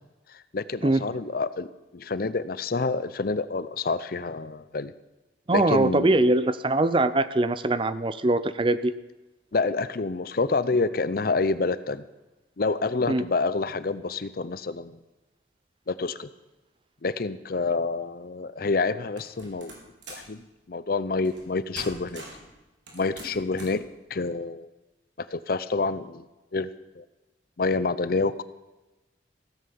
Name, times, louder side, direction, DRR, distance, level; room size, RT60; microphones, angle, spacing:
voice 1, 0.5-1.7 1.9-4.9 5.5-6.2 9.5-12.0 12.6-15.0 15.9-16.3 17.0-19.7 20.1-22.2 22.9-23.8 24.1-24.7 25.2-26.3 26.5-26.7 27.0-27.1 27.6-28.4, left 3 dB, 50° left, 15 dB, 0.6 m, -28 dB
voice 2, 5.5-8.9 13.1-13.2, right 2 dB, 25° right, 14 dB, 0.5 m, -22 dB
sound 1, 19.2-20.3 21.2-21.5 21.7-22.5 22.9-23.8, right 2 dB, 75° right, 4.1 m, -43 dB
16.0 x 9.3 x 7.0 m, 1.1 s
head